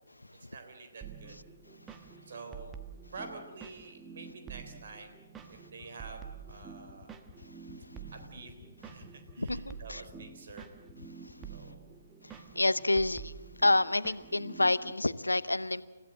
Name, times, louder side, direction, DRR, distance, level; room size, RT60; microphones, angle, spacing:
voice 1, 0.4-1.4 1.9-2.7 3.1-5.2 5.5-7.1 8.1-8.5 8.8-10.7 11.5-12.0, right 3 dB, 50° right, 6 dB, 3.8 m, -48 dB
sound 1, 1.0-14.9, right 7 dB, 15° right, 1.1 m, -48 dB
sound 2, 5.7-11.7, left 9 dB, 30° left, 1.4 m, -53 dB
voice 2, 9.4-10.0 12.2-13.3 13.6-15.8, left 2 dB, 80° left, 17 dB, 0.8 m, -28 dB
29.0 x 15.5 x 7.5 m, 1.2 s
figure-of-eight pair, 130°, 0 cm